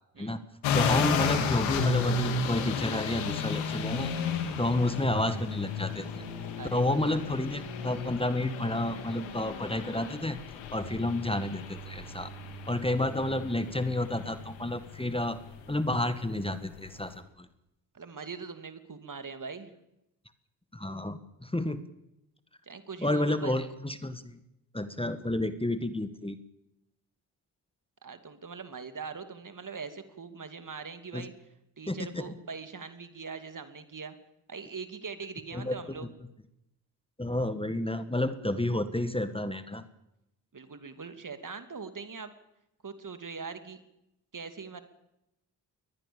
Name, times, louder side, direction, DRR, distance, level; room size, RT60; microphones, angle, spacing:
sound 1, 0.6-17.2, left 5 dB, 90° left, 2.7 m, -33 dB
voice 1, 0.7-4.1 4.6-6.2 6.7-10.4 10.7-12.3 12.7-15.4 15.7-17.5 20.7-21.8 23.0-24.4 24.7-26.4 31.1-31.2 31.9-32.3 35.5-36.1 37.2-39.8, left 1 dB, 10° left, 11 dB, 1.8 m, -30 dB
voice 2, 6.6-7.2 17.9-19.7 22.7-23.5 28.0-31.3 31.8-34.2 34.5-36.1 40.5-42.3 42.8-43.8 44.3-44.8, right 5 dB, 45° right, 9 dB, 2.8 m, -41 dB
22.5 x 19.5 x 7.2 m, 0.85 s
supercardioid pair, 45°, 45 cm